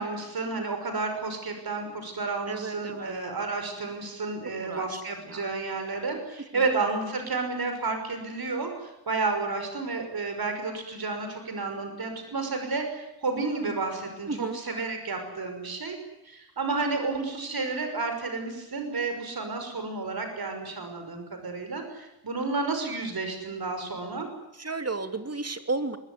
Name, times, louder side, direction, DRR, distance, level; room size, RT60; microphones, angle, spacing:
voice 1, 0.0-16.0 16.2-24.3, right 3 dB, 65° right, 6 dB, 5.9 m, -31 dB
voice 2, 2.5-3.1 4.6-5.0 5.3-5.4 6.5-6.7 14.3-14.6 24.5-26.0, right 3 dB, 40° right, 8 dB, 2.7 m, -33 dB
25.5 x 22.5 x 9.6 m, 0.89 s
wide cardioid pair, 110°, 39 cm